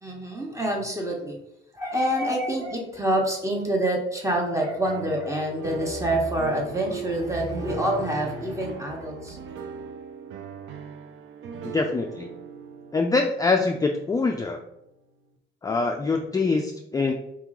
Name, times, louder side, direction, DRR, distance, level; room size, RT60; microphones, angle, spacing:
voice 1, 0.0-1.4 1.7-9.4, right 1 dB, 15° right, 0 dB, 1.2 m, -26 dB
sound 1, 4.9-14.8, right 6 dB, 75° right, 0.6 m, -39 dB
voice 2, 11.6-12.3 12.9-14.6 15.6-17.1, left 3 dB, 20° left, 3 dB, 0.3 m, -24 dB
4.4 x 2.9 x 3.7 m, 0.82 s
cardioid pair, 90°, 20 cm